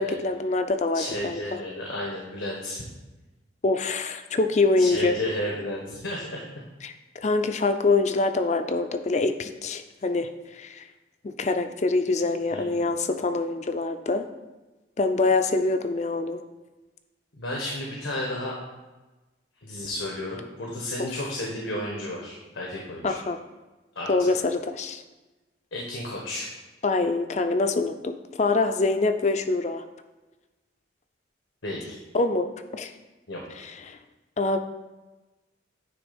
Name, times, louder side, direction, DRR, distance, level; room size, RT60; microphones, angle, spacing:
voice 1, 0.0-1.6 3.6-5.2 6.8-10.9 11.2-14.3 15.0-16.4 21.0-21.1 23.0-23.4 24.1-25.0 26.8-29.8 32.1-32.9 33.6-34.0 34.4-34.6, left 3 dB, 35° left, 8 dB, 0.4 m, -25 dB
voice 2, 0.9-2.8 4.8-6.4 12.5-12.8 17.3-18.5 19.6-23.0 23.9-24.4 25.7-26.5 31.6-32.0 33.3-33.4, left 1 dB, 85° left, -3 dB, 1.3 m, -32 dB
9.6 x 3.4 x 5.2 m, 1.2 s
head